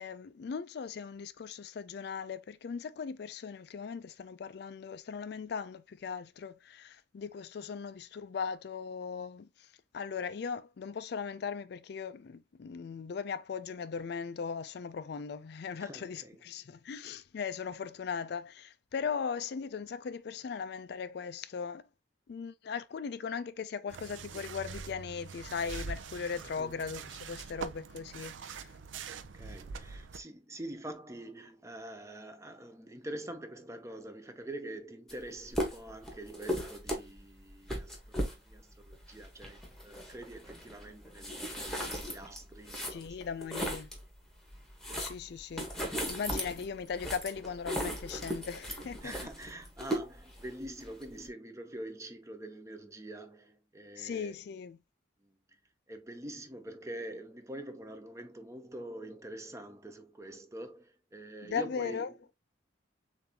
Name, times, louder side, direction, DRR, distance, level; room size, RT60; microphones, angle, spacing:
voice 1, 0.0-9.7 9.9-21.8 22.3-28.7 42.9-43.9 45.0-45.7 46.0-49.1 54.0-54.8 61.4-62.1, left 6 dB, 55° left, 0.3 m, -38 dB
voice 2, 15.8-16.4 26.6-26.8 29.1-43.2 49.0-54.4 55.2-55.3 55.9-62.1, right 1 dB, 15° right, 0.6 m, -45 dB
sound 1, 23.9-30.2, right 5 dB, 75° right, 0.5 m, -43 dB
sound 2, 35.1-35.2 35.5-44.0 44.4-51.3, equal, ahead, 1.1 m, -38 dB
6.8 x 2.6 x 2.8 m
head